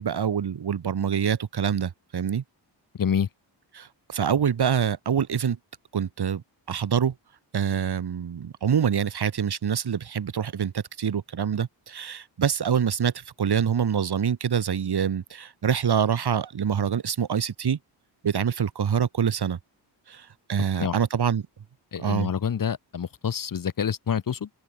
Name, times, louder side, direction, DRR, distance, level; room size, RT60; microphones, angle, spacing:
voice 1, 0.0-2.4 3.7-5.6 5.9-6.4 6.7-7.1 7.5-17.8 18.2-19.6 20.1-21.4 22.0-22.3, right 8 dB, 60° right, 4.0 m, -25 dB
voice 2, 3.0-3.3 20.7-21.0 21.9-24.5, left 7 dB, 45° left, 1.5 m, -27 dB
open air
wide cardioid pair, 125°, 44 cm